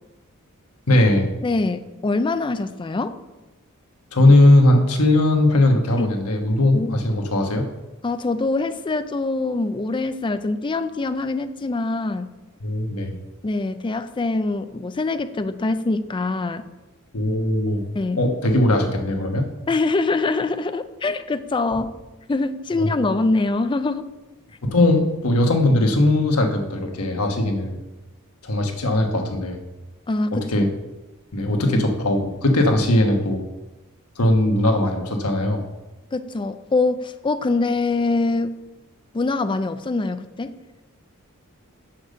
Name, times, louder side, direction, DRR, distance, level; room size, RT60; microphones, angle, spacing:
voice 1, 0.9-1.3 4.1-7.6 12.6-13.1 17.1-17.8 18.2-19.4 22.8-22.9 24.6-27.8 28.4-29.6 30.5-30.7 31.3-33.4 34.2-35.6, left 1 dB, 80° left, 3 dB, 1.3 m, -19 dB
voice 2, 1.4-3.2 6.0-6.2 6.7-7.0 8.0-12.3 13.4-16.6 17.9-18.2 19.7-22.0 22.3-24.1 30.1-30.7 31.5-31.9 36.1-38.6 39.1-40.6, left 3 dB, 20° left, 10 dB, 0.4 m, -24 dB
6.6 x 5.8 x 6.5 m, 1.1 s
head